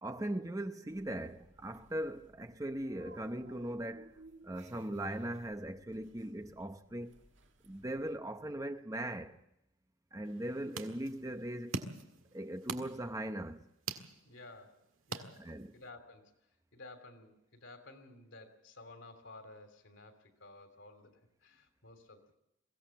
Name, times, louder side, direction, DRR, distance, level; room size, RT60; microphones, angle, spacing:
voice 1, 0.0-4.2 4.4-7.2 7.6-9.4 10.1-11.8 12.3-13.6 15.4-15.7, right 1 dB, 15° right, 0.8 m, -39 dB
sound 1, 0.9-8.2, right 2 dB, 65° right, 1.9 m, -61 dB
sound 2, 10.2-15.9, right 4 dB, 85° right, 1.7 m, -45 dB
voice 2, 14.2-14.8 15.1-15.5 15.7-16.3 16.7-22.4, left 2 dB, 65° left, 3.0 m, -54 dB
22.5 x 16.5 x 7.2 m
head